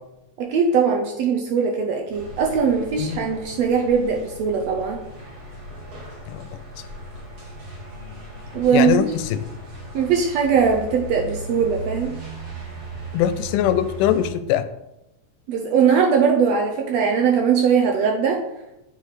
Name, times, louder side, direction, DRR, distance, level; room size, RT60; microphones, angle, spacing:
voice 1, 0.4-5.0 8.5-9.1 9.9-12.1 15.5-18.4, right 6 dB, 75° right, 2 dB, 1.6 m, -20 dB
sound 1, 2.1-14.3, equal, 40° right, 1.6 m, -37 dB
voice 2, 8.7-9.4 13.1-14.7, left 10 dB, 85° left, 11 dB, 2.1 m, -22 dB
8.4 x 4.9 x 4.1 m, 0.90 s
omnidirectional pair, 3.6 m